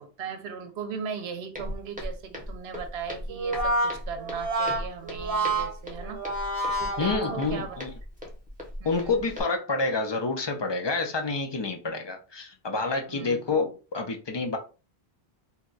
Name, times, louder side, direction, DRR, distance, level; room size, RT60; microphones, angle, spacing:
voice 1, 0.0-6.2 6.8-7.8 8.8-9.2 13.1-13.4, right 6 dB, 80° right, 0.9 m, -38 dB
Walk footsteps, 1.5-9.4, left 1 dB, 10° right, 0.8 m, -39 dB
Brass instrument, 3.3-7.8, right 2 dB, 40° right, 0.8 m, -29 dB
voice 2, 7.0-7.9 8.8-14.6, left 3 dB, 35° left, 0.4 m, -28 dB
2.8 x 2.2 x 3.8 m
omnidirectional pair, 1.1 m